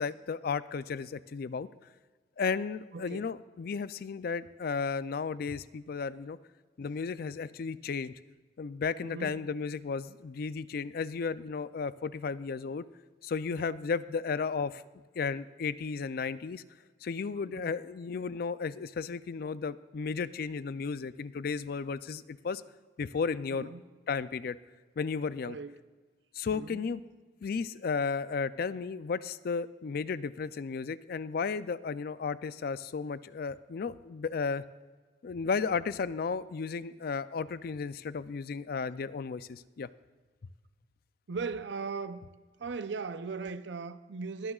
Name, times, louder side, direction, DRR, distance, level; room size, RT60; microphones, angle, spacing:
voice 1, 0.0-1.7 2.4-6.4 6.8-8.1 8.6-12.8 13.2-14.8 15.2-16.6 17.0-22.6 23.0-23.7 24.1-24.6 25.0-25.6 26.4-27.0 27.4-34.6 35.2-39.9, left 5 dB, 55° left, 0.4 m, -34 dB
voice 2, 2.9-3.3 9.0-9.4 13.5-13.6 17.5-17.7 23.5-23.8 25.4-25.8 26.5-26.8 41.3-42.2 42.6-44.5, right 4 dB, 80° right, 0.6 m, -38 dB
21.0 x 9.8 x 2.4 m
head